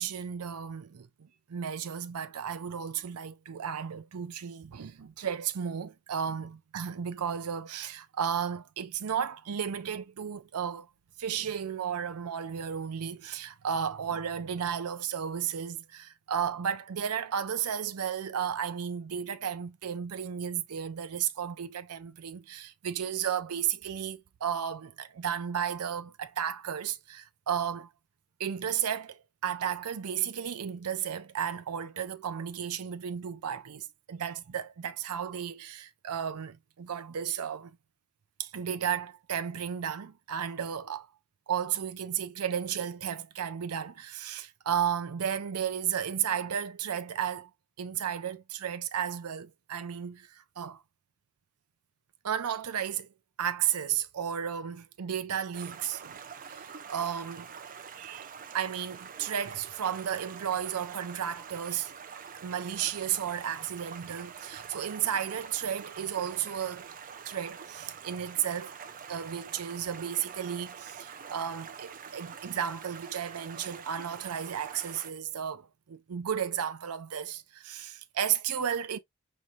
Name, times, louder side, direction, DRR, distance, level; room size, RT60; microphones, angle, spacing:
voice 1, 0.0-10.9 11.2-27.9 28.4-37.8 38.4-41.1 41.5-47.5 47.8-50.8 52.2-53.1 53.4-56.2 56.5-57.5 58.0-58.3 58.5-61.9 62.4-66.9 67.3-68.7 69.1-79.0, right 8 dB, 90° right, 0.5 m, -33 dB
Stream, 55.5-75.1, right 7 dB, 40° right, 0.5 m, -46 dB
5.4 x 3.2 x 2.3 m
head